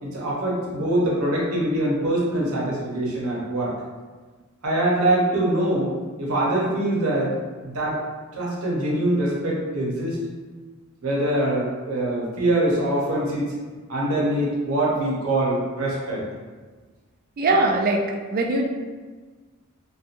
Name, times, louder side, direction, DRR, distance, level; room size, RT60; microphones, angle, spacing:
voice 1, 0.0-3.7 4.6-5.9 6.2-7.3 7.6-8.0 8.3-10.2 11.0-13.5 13.9-16.2, right 1 dB, 80° right, -4 dB, 0.7 m, -23 dB
voice 2, 17.4-18.6, right 2 dB, 40° right, 1 dB, 0.3 m, -21 dB
2.7 x 2.3 x 2.5 m, 1.4 s
head